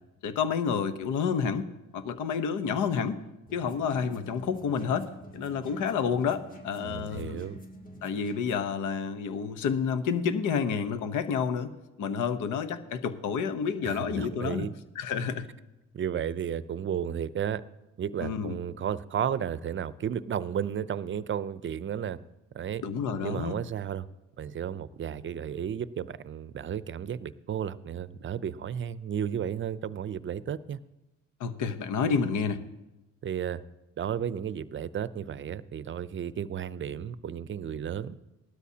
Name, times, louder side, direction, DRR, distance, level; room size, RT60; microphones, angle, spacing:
voice 1, 0.2-3.2 3.5-7.5 8.0-11.7 12.0-14.7 15.0-15.5 18.2-18.6 22.8-23.6 31.4-32.6, left 6 dB, 80° left, 11 dB, 1.0 m, -29 dB
sound 1, 3.5-8.7, right 1 dB, 30° left, 1.9 m, -48 dB
voice 2, 6.8-7.6 13.8-14.8 15.9-17.6 18.0-22.2 22.5-22.8 23.2-24.1 24.4-30.8 33.2-33.6 34.0-38.2, right 9 dB, 40° right, 17 dB, 0.5 m, -33 dB
17.5 x 12.5 x 2.8 m, 1.0 s
cardioid pair, 90°, 30 cm